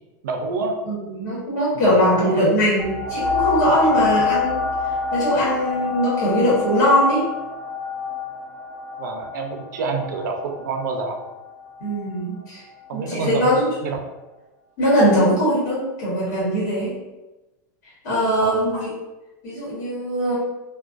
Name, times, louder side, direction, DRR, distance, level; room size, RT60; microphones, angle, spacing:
voice 1, 0.2-0.8 1.7-2.4 9.0-11.2 12.9-14.0 18.4-18.7, right 4 dB, 85° right, 3 dB, 0.5 m, -28 dB
voice 2, 0.8-4.6 5.1-7.2 11.8-12.6 12.9-13.7 14.8-16.9 18.0-18.9 19.4-20.4, equal, 65° left, -7 dB, 1.1 m, -20 dB
sound 1, 2.8-12.0 12.7-12.8, left 5 dB, 25° right, 0.4 m, -26 dB
2.3 x 2.2 x 2.4 m, 1.1 s
supercardioid pair, 180°, 10 cm